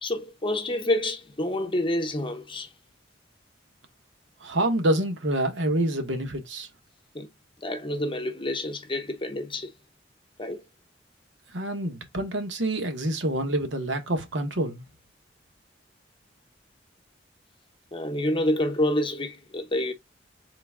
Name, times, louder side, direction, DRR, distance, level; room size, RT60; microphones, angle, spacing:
voice 1, 0.0-2.7 7.1-7.3 7.6-9.7 10.4-10.6 17.9-19.9, left 1 dB, 30° left, 0.8 m, -28 dB
voice 2, 4.4-6.7 11.5-14.8, right 1 dB, 80° right, 1.1 m, -27 dB
3.9 x 3.4 x 3.5 m
head